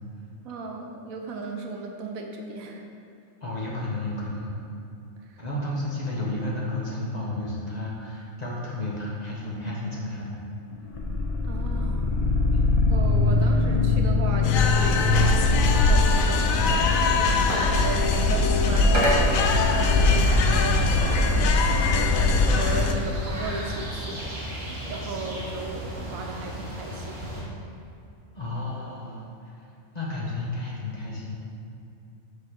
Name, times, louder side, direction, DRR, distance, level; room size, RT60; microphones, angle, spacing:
voice 1, 0.4-2.8 11.4-12.0 12.9-17.2 17.5-27.5, right 4 dB, 80° right, 2 dB, 1.2 m, -36 dB
voice 2, 3.4-4.5 5.4-10.4 12.5-12.7 28.3-29.3 29.9-31.3, left 2 dB, 30° left, -5 dB, 1.2 m, -32 dB
sound 1, 10.9-17.1, left 3 dB, 55° left, 0.4 m, -23 dB
sound 2, 14.4-23.0, left 3 dB, 75° left, 1.0 m, -21 dB
sound 3, 15.0-27.4, equal, 40° right, 1.7 m, -32 dB
6.2 x 3.9 x 6.0 m, 2.7 s
omnidirectional pair, 1.4 m